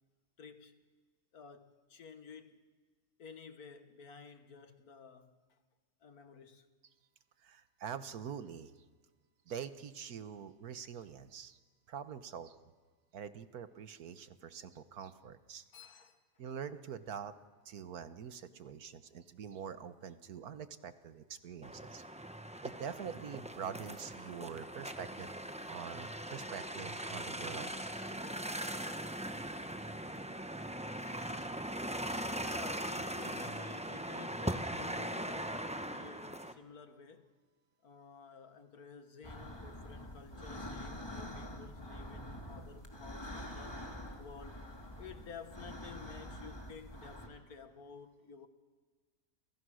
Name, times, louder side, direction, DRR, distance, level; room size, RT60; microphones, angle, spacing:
voice 1, 0.4-0.8 1.3-2.7 3.2-5.6 6.0-6.7 15.7-16.2 28.6-28.9 29.5-29.7 30.6-31.5 31.9-37.3 37.8-43.9 44.2-44.6 45.0-48.5, left 6 dB, 70° left, 2.0 m, -53 dB
voice 2, 7.4-8.7 9.5-11.6 11.9-12.5 13.1-15.6 16.4-17.3 17.6-22.0 22.6-25.3 25.7-27.7, right 7 dB, 70° right, 1.6 m, -45 dB
sound 1, 21.6-36.5, right 1 dB, 5° right, 0.7 m, -40 dB
sound 2, 39.2-47.3, left 1 dB, 15° left, 2.8 m, -46 dB
29.0 x 28.0 x 6.4 m
omnidirectional pair, 1.6 m